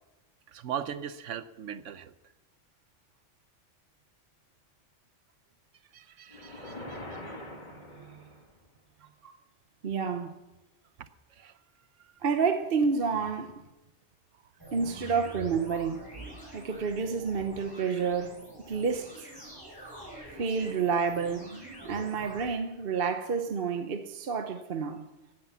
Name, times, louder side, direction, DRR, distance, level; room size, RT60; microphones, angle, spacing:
voice 1, 0.5-2.1 5.9-8.4 9.0-9.1 11.0-11.6 12.0-12.1, right 8 dB, 85° right, 1.1 m, -41 dB
sound 1, 6.3-8.6, left 1 dB, 40° left, 2.0 m, -43 dB
voice 2, 9.8-10.3 12.2-13.6 14.7-16.0 16.5-18.4 18.7-19.3 20.4-21.5 21.8-25.1, right 5 dB, 55° right, 1.0 m, -29 dB
sound 2, 14.6-22.5, equal, 20° right, 5.3 m, -45 dB
15.5 x 9.9 x 7.0 m
omnidirectional pair, 1.2 m